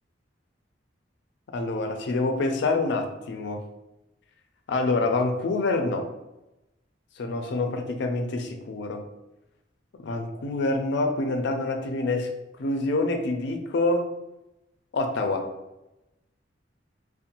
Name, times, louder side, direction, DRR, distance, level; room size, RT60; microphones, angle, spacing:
voice 1, 1.5-3.6 4.7-6.1 7.2-9.0 10.0-12.3 12.6-14.1 14.9-15.5, left 2 dB, 65° left, 5 dB, 0.4 m, -26 dB
2.5 x 2.1 x 2.8 m, 0.96 s
head